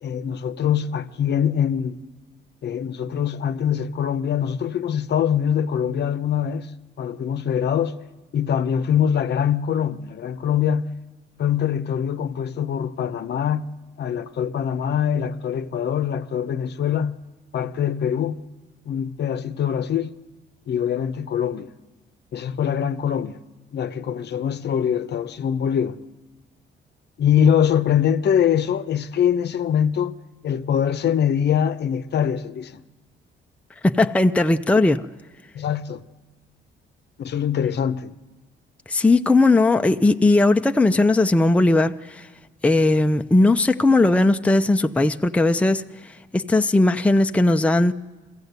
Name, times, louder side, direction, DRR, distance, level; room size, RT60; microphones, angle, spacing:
voice 1, 0.0-2.0 2.6-6.7 7.0-7.9 8.3-10.9 11.4-13.7 14.0-17.2 17.5-18.4 18.9-20.1 20.7-21.7 22.3-23.4 23.7-26.0 27.2-30.2 30.4-32.8 35.5-36.0 37.2-38.1, left 8 dB, 60° left, 0.8 m, -23 dB
voice 2, 33.8-35.1 38.9-42.3 42.6-47.9, left 2 dB, 5° left, 0.6 m, -18 dB
22.5 x 15.5 x 8.1 m
cardioid pair, 90°, 20 cm